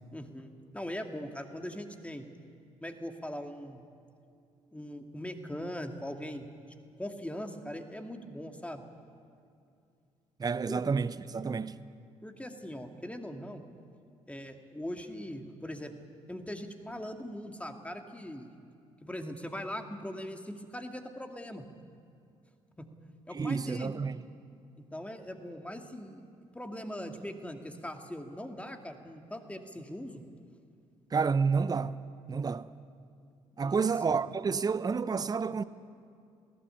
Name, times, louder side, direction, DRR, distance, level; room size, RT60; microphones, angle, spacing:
voice 1, 0.1-0.5 0.7-2.3 2.8-3.8 4.7-6.5 7.0-8.8 10.7-10.8 12.2-13.6 14.3-15.9 16.3-18.5 19.0-21.7 22.8-22.9 23.3-23.9 24.9-26.3 26.5-30.2 33.6-34.1, equal, 10° left, 2.3 m, -40 dB
voice 2, 10.4-11.8 23.3-24.2 31.1-32.0 32.3-32.7 33.6-35.6, right 5 dB, 25° right, 0.7 m, -29 dB
22.0 x 16.5 x 9.2 m
figure-of-eight pair, 45°, 16 cm